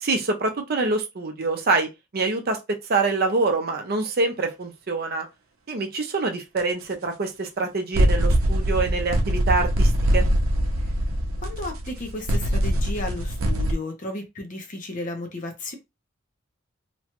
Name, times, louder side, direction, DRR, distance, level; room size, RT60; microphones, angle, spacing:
voice 1, 0.0-5.3 5.7-10.2, right 3 dB, 50° right, 0.6 m, -25 dB
sound 1, 6.6-6.7 7.9-13.7, equal, 85° right, 0.6 m, -22 dB
voice 2, 11.4-15.7, left 2 dB, 40° left, 0.7 m, -34 dB
2.9 x 2.3 x 2.9 m
head